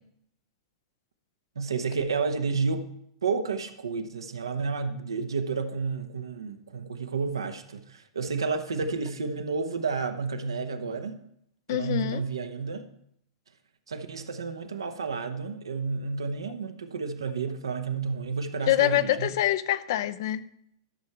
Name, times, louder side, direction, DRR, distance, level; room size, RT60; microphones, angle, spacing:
voice 1, 1.5-2.9 3.2-11.2 11.7-12.9 13.9-19.3, right 4 dB, 75° right, 8 dB, 1.0 m, -31 dB
voice 2, 11.7-12.2 18.7-20.4, left 13 dB, 55° left, 14 dB, 0.6 m, -25 dB
12.5 x 6.6 x 4.6 m, 0.70 s
figure-of-eight pair, 95°, 2 cm